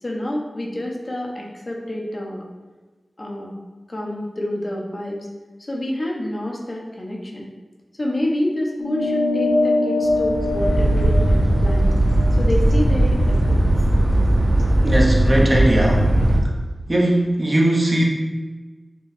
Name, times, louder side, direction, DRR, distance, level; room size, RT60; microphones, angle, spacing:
voice 1, 0.0-2.4 3.2-3.5 3.9-5.3 5.6-7.5 8.0-11.9 12.4-13.6, left 1 dB, 45° left, -1 dB, 0.8 m, -28 dB
sound 1, 8.8-13.6, left 2 dB, 80° left, 0.4 m, -24 dB
sound 2, 10.1-16.4, right 1 dB, 60° right, 0.7 m, -18 dB
voice 2, 14.8-16.1 16.9-18.0, right 1 dB, 35° right, -2 dB, 0.9 m, -19 dB
5.2 x 2.3 x 3.3 m, 1.3 s
cardioid pair, 40°, 0 cm